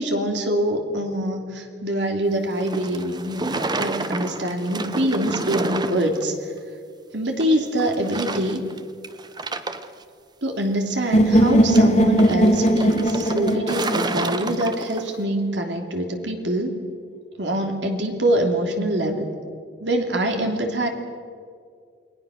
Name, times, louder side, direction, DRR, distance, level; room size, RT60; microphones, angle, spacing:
voice 1, 0.0-6.3 7.1-8.6 10.4-16.8 17.4-19.3 19.8-20.9, right 1 dB, 75° right, 3 dB, 3.0 m, -24 dB
sound 1, 2.5-6.3 6.6-6.7 7.4-7.5 7.8-8.8 9.0-10.0 11.4-15.2, right 2 dB, 25° right, 0.9 m, -30 dB
sound 2, 11.1-15.1, equal, 40° left, 1.8 m, -19 dB
29.0 x 20.5 x 6.5 m, 2.1 s
head